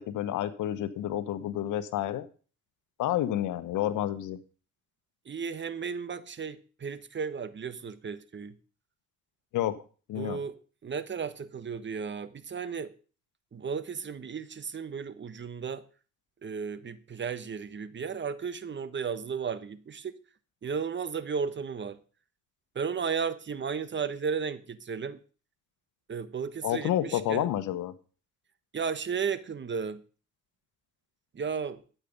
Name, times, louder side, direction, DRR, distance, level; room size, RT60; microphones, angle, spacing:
voice 1, 0.0-2.3 3.0-4.4 9.5-9.8 10.1-10.4 26.6-27.9, left 12 dB, 85° left, 1.1 m, -29 dB
voice 2, 5.2-8.6 10.2-10.5 10.8-12.9 13.5-15.8 16.4-20.1 20.6-22.0 22.7-25.2 26.1-27.5 28.7-30.0 31.3-31.8, right 6 dB, 40° right, 1.2 m, -34 dB
12.0 x 8.5 x 5.4 m
cardioid pair, 90°, 30 cm